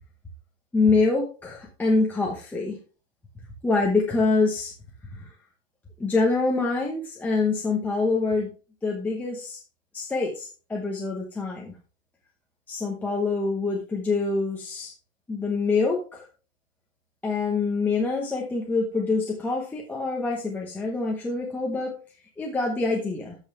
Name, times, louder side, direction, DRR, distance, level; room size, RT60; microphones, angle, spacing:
voice 1, 0.7-2.8 3.6-4.7 5.1-5.3 6.0-8.5 8.8-9.6 9.9-11.7 12.7-14.9 15.3-16.3 17.2-21.9 22.4-23.4, left 3 dB, 5° left, -2 dB, 0.9 m, -25 dB
13.5 x 5.6 x 3.3 m, 0.35 s
supercardioid pair, 165°, 34 cm